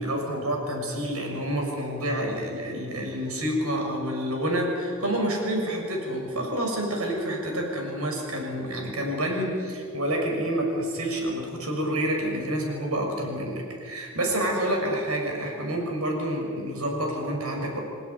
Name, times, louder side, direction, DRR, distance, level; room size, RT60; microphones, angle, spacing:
voice 1, 0.0-17.8, right 1 dB, 90° right, 1 dB, 6.3 m, -28 dB
27.5 x 16.5 x 9.6 m, 2.3 s
head